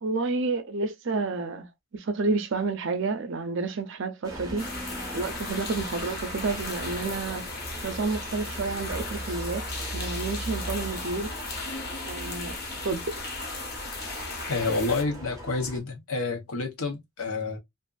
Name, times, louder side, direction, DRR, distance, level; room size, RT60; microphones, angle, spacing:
voice 1, 0.0-1.7 1.9-4.7 5.1-7.4 7.8-11.3 12.0-12.5 12.8-13.0, right 3 dB, 55° right, 0.5 m, -30 dB
sound 1, 4.2-15.8, right 1 dB, 15° right, 0.6 m, -39 dB
sound 2, 4.6-15.0, left 3 dB, 45° left, 0.7 m, -37 dB
voice 2, 14.5-17.6, left 3 dB, 80° left, 0.8 m, -29 dB
2.5 x 2.4 x 2.3 m
head